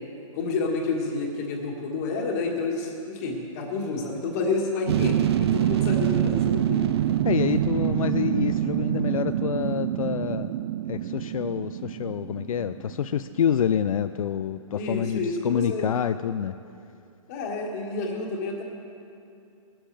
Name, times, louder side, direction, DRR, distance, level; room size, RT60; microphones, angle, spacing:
voice 1, 0.3-6.8 7.5-7.6 14.8-15.9 17.3-18.6, left 3 dB, 30° left, 1 dB, 1.8 m, -29 dB
sound 1, 4.9-13.4 13.7-13.8, right 11 dB, 50° right, 0.4 m, -26 dB
voice 2, 7.2-10.5 10.9-16.6, left 9 dB, 75° left, 11 dB, 0.4 m, -27 dB
18.5 x 13.0 x 3.4 m, 2.5 s
hypercardioid pair, 165°, 18 cm